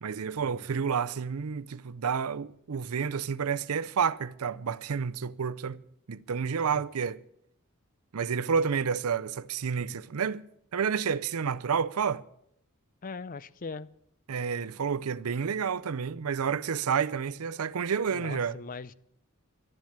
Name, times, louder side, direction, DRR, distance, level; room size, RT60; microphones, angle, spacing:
voice 1, 0.0-5.8 6.1-7.2 8.1-10.4 10.7-12.2 14.3-18.6, right 6 dB, 85° right, 0.5 m, -30 dB
voice 2, 13.0-13.9 18.1-18.9, left 4 dB, 40° left, 0.5 m, -40 dB
12.5 x 10.5 x 8.7 m
head